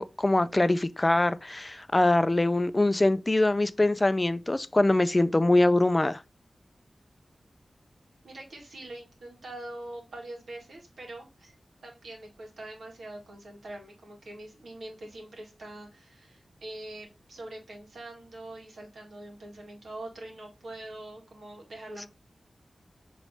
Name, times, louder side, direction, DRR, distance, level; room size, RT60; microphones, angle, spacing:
voice 1, 0.0-6.2, left 2 dB, 25° left, 0.3 m, -23 dB
voice 2, 8.2-11.5 11.8-22.1, right 1 dB, 90° right, 1.5 m, -43 dB
5.3 x 3.1 x 3.1 m
wide cardioid pair, 60°, 0 cm